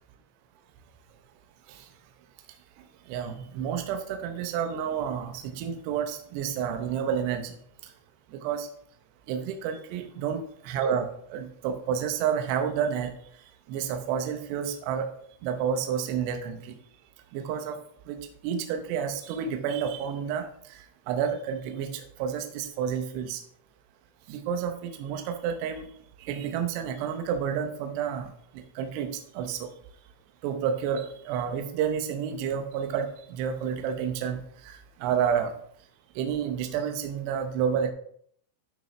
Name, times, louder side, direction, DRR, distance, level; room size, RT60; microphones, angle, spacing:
voice 1, 3.1-7.6 8.3-8.7 9.3-13.1 13.7-15.1 15.4-16.8 17.3-17.8 18.1-23.4 24.3-25.9 26.2-29.7 30.4-35.5 36.2-37.9, right 8 dB, 75° right, 6 dB, 2.8 m, -30 dB
12.0 x 5.5 x 3.3 m, 0.63 s
omnidirectional pair, 5.5 m